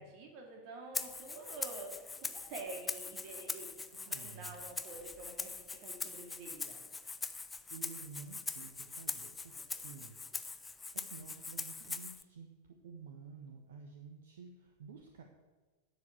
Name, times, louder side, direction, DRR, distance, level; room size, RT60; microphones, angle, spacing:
voice 1, 0.0-2.1 2.3-3.7 4.0-6.8, right 3 dB, 45° right, 1 dB, 2.4 m, -48 dB
Rattle (instrument), 0.9-12.2, left 4 dB, 15° left, 0.6 m, -42 dB
voice 2, 3.7-4.6 7.7-10.2 10.9-15.2, right 5 dB, 60° right, 3 dB, 1.2 m, -51 dB
11.0 x 7.4 x 8.2 m, 1.3 s
figure-of-eight pair, 90°, 0 cm